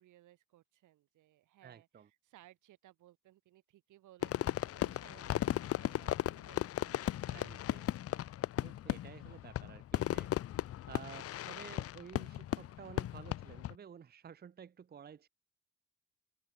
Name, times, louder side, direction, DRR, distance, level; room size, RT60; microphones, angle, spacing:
voice 1, 0.0-7.3, right 14 dB, 80° right, 1.8 m, -62 dB
voice 2, 1.6-2.1 5.3-5.4 7.3-7.9 8.6-10.3 10.9-15.3, right 8 dB, 30° right, 0.7 m, -52 dB
Fireworks, 4.2-13.8, left 12 dB, 50° left, 0.5 m, -36 dB
cardioid pair, 90°, 30 cm